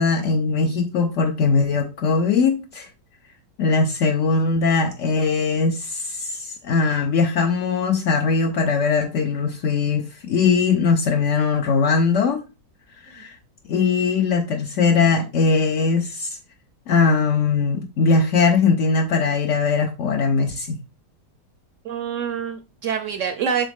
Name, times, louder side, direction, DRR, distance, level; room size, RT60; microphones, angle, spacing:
voice 1, 0.0-2.9 3.6-12.4 13.1-13.4 13.7-16.3 16.9-20.8, left 4 dB, 75° left, 0.7 m, -20 dB
voice 2, 21.8-23.7, right 7 dB, 70° right, 0.7 m, -26 dB
7.0 x 3.7 x 3.6 m
omnidirectional pair, 1.9 m